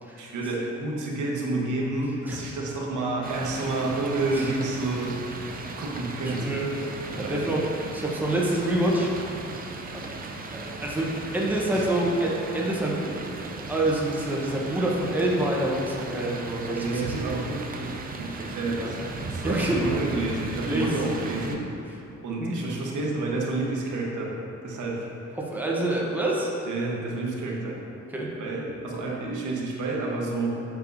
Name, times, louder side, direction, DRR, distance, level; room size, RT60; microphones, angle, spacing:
voice 1, 0.2-5.2 5.8-6.6 7.2-7.5 8.2-8.3 11.7-11.9 16.8-19.0 19.2-21.6 22.2-24.3 24.6-25.1 26.7-27.8 28.4-30.6, right 2 dB, 80° right, -2 dB, 1.2 m, -29 dB
sound 1, 3.2-21.6, right 3 dB, 30° right, 0.5 m, -36 dB
voice 2, 6.2-6.7 7.1-7.6 7.9-9.1 9.9-10.0 10.5-13.1 13.4-17.1 18.8-18.9 19.4-19.8 20.6-20.9 22.4-22.5 25.4-26.5 28.1-28.3, right 1 dB, 5° right, -4 dB, 0.9 m, -27 dB
7.1 x 6.6 x 2.7 m, 2.8 s
cardioid pair, 125°, 30 cm